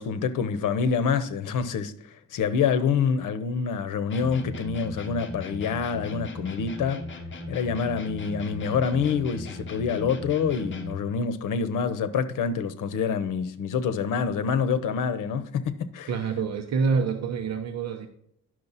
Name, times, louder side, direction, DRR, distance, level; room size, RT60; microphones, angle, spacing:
voice 1, 0.0-7.0 7.5-16.1, left 6 dB, 85° left, 0.9 m, -26 dB
sound 1, 4.1-11.1, left 1 dB, 40° left, 1.4 m, -38 dB
voice 2, 16.1-18.1, right 5 dB, 60° right, 0.9 m, -26 dB
10.5 x 6.4 x 4.1 m
cardioid pair, 150°, 31 cm